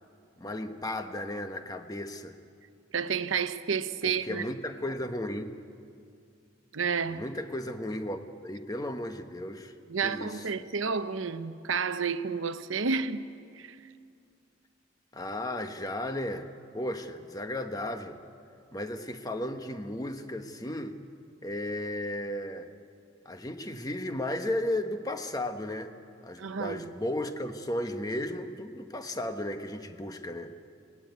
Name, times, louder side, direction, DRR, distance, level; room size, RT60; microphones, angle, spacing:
voice 1, 0.4-2.4 4.0-5.6 7.1-9.7 10.0-10.4 15.1-16.5 16.7-18.2 18.7-21.0 21.4-22.7 23.2-25.9 26.2-30.5, left 1 dB, 20° left, 1.0 m, -34 dB
voice 2, 2.9-4.4 6.7-7.2 9.9-13.3 13.6-13.8 26.4-26.9, right 5 dB, 80° right, 0.8 m, -30 dB
20.5 x 18.5 x 9.3 m
head